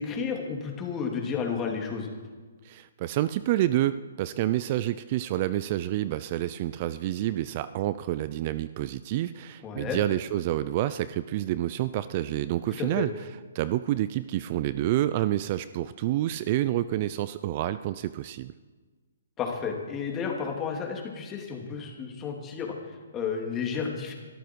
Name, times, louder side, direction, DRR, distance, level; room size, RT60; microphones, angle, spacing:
voice 1, 0.0-2.1 9.6-10.0 12.8-13.1 19.4-24.1, left 6 dB, 20° left, 1 dB, 2.9 m, -32 dB
voice 2, 2.6-13.1 13.5-18.5, right 14 dB, 40° right, 14 dB, 0.5 m, -28 dB
23.0 x 13.5 x 4.7 m, 1.4 s
hypercardioid pair, 145°, 0 cm